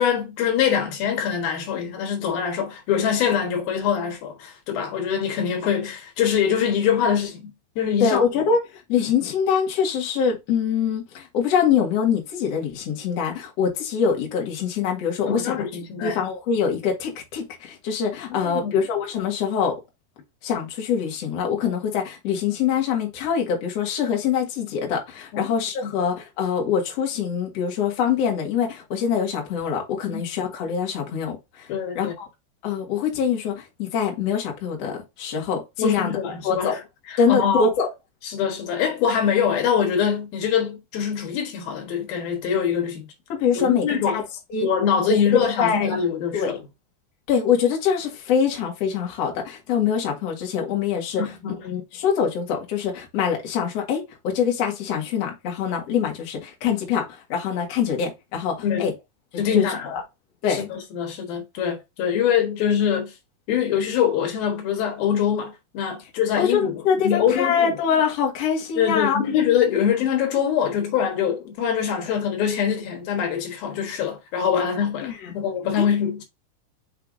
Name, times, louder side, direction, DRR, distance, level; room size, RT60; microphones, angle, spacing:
voice 1, 0.0-8.3 15.3-16.2 18.3-18.8 25.3-25.5 25.8-25.9 30.0-30.2 31.7-32.1 35.8-36.8 37.1-37.7 38.2-43.1 43.6-44.2 44.6-46.6 51.2-51.6 58.6-58.9 59.4-59.9 60.5-63.1 63.5-67.7 68.8-76.2, left 8 dB, 80° left, 3.3 m, -24 dB
voice 2, 8.0-15.6 16.0-19.7 20.4-31.7 32.0-32.3 32.6-36.1 36.4-36.8 37.2-37.9 43.3-43.8 44.1-44.2 44.5-44.7 45.1-45.2 45.6-45.9 46.3-46.5 47.3-51.2 51.6-58.9 59.5-60.0 60.4-60.7 66.4-69.2 75.0-75.3 75.8-75.9, left 7 dB, 50° left, 2.6 m, -24 dB
6.8 x 5.6 x 2.6 m
omnidirectional pair, 4.2 m